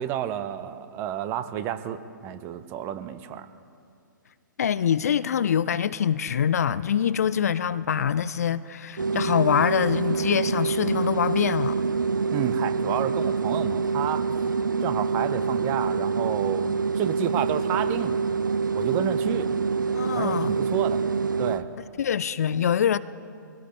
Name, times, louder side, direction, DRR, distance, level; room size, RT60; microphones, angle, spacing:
voice 1, 0.0-3.5 12.3-14.2 14.8-18.2 18.7-19.5 20.1-21.1 21.4-21.7, right 10 dB, 20° right, 0.6 m, -30 dB
voice 2, 4.6-11.8 19.9-20.6 22.0-23.0, left 8 dB, 50° left, 0.4 m, -24 dB
sound 1, 9.0-21.6, right 5 dB, 70° right, 0.6 m, -26 dB
23.0 x 16.5 x 3.2 m
figure-of-eight pair, 120°, 11 cm